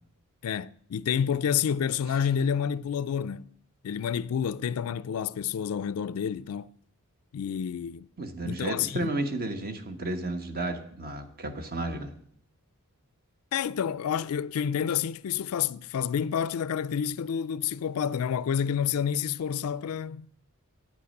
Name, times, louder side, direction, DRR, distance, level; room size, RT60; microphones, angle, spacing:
voice 1, 0.4-3.5 3.8-6.7 7.3-8.1 8.4-9.1 13.5-20.3, left 8 dB, 70° left, 0.4 m, -29 dB
voice 2, 8.2-12.1, right 2 dB, 45° right, 1.3 m, -32 dB
9.3 x 8.4 x 6.5 m
head